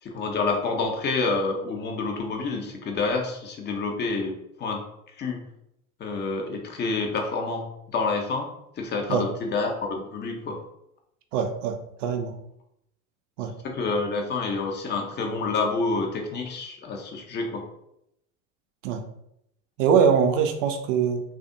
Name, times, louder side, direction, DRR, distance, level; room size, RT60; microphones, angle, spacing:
voice 1, 0.0-4.8 5.2-5.5 6.0-8.5 8.8-10.6 13.6-17.7, left 3 dB, 25° left, 2 dB, 0.7 m, -28 dB
voice 2, 11.3-12.4 13.4-13.5 18.8-19.0 19.8-21.2, right 7 dB, 60° right, 6 dB, 0.6 m, -23 dB
3.3 x 2.5 x 3.8 m, 0.79 s
figure-of-eight pair, 70°, 42 cm